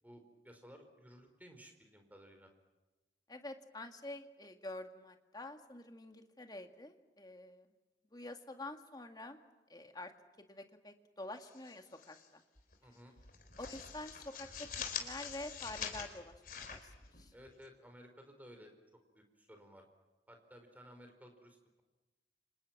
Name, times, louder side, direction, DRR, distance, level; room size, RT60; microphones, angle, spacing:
voice 1, 0.0-2.5 12.8-13.1 17.3-18.7 19.1-19.8 20.3-21.8, equal, 10° right, 5 dB, 4.6 m, -57 dB
voice 2, 3.3-7.7 8.1-9.4 9.7-10.1 10.4-12.4 13.6-17.3, left 2 dB, 25° left, 5 dB, 2.1 m, -48 dB
sound 1, 11.4-12.3 12.6-12.8 13.2-17.6, left 7 dB, 55° left, 4.1 m, -45 dB
30.0 x 27.5 x 6.1 m, 1.1 s
head